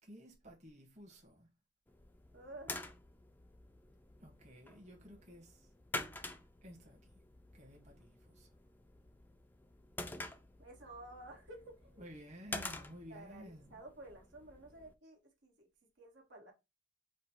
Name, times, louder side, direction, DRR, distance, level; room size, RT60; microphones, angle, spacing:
voice 1, 0.0-1.5 4.2-5.7 6.6-7.2 7.5-8.5 12.0-13.8, equal, 35° right, 1.3 m, -54 dB
sound 1, 1.9-14.9, left 2 dB, 10° left, 0.3 m, -48 dB
voice 2, 2.3-2.8 10.6-12.1 13.1-15.7 16.0-16.5, right 1 dB, 80° right, 1.4 m, -53 dB
5.0 x 2.1 x 4.4 m
head